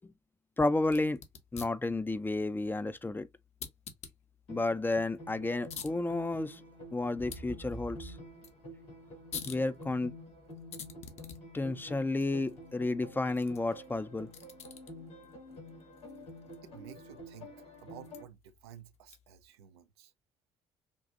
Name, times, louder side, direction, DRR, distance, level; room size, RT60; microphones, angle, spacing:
voice 1, 0.6-1.2 1.5-3.3 4.5-6.6 6.9-8.2 9.4-10.1 11.5-14.3, left 2 dB, 15° left, 0.5 m, -31 dB
sound 1, 0.8-19.5, left 6 dB, 55° left, 0.9 m, -51 dB
sound 2, 4.5-18.2, left 1 dB, 75° left, 2.7 m, -49 dB
sound 3, 7.2-11.1 11.6-11.7, right 3 dB, 30° right, 0.6 m, -48 dB
voice 2, 16.6-17.5 17.8-20.1, right 10 dB, 75° right, 0.5 m, -52 dB
5.3 x 2.4 x 2.4 m
figure-of-eight pair, 50°, 14 cm